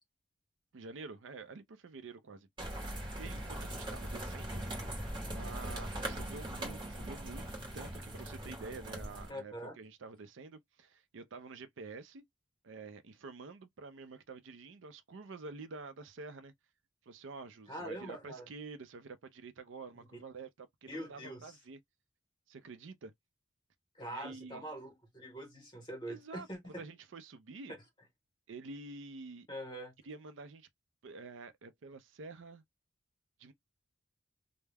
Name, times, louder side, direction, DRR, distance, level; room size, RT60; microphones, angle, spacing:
voice 1, 0.7-2.5 3.2-4.7 5.3-12.2 12.6-16.5 17.1-21.8 22.5-23.1 24.1-24.6 26.1-26.5 26.8-27.7 28.5-29.5 30.1-30.7 31.0-32.6 33.4-33.5, right 4 dB, 75° right, 0.5 m, -48 dB
sound 1, 2.6-9.3, right 1 dB, 25° right, 0.9 m, -40 dB
voice 2, 9.3-9.8 17.7-18.5 20.1-20.2 20.9-21.6 23.9-26.8 29.5-29.9, right 1 dB, 25° left, 1.0 m, -44 dB
2.2 x 2.0 x 3.3 m
head